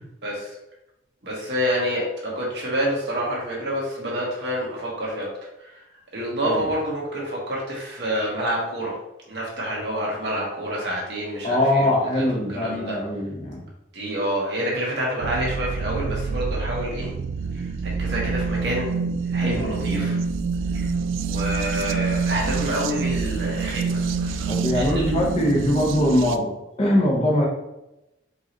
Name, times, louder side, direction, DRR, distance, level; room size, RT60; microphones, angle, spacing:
voice 1, 0.2-0.6 1.2-5.3 5.6-5.8 6.1-9.0 9.2-12.2 12.5-13.0 13.9-17.1 17.5-19.0 19.2-20.2 20.7-20.9 21.2-25.2, equal, 60° right, -4 dB, 1.4 m, -28 dB
voice 2, 11.4-13.6 19.4-20.1 24.5-26.5 26.8-27.5, left 1 dB, 30° left, -1 dB, 0.8 m, -22 dB
sound 1, 15.2-26.4, right 4 dB, 90° right, 0.3 m, -26 dB
4.7 x 3.1 x 2.9 m, 0.93 s
head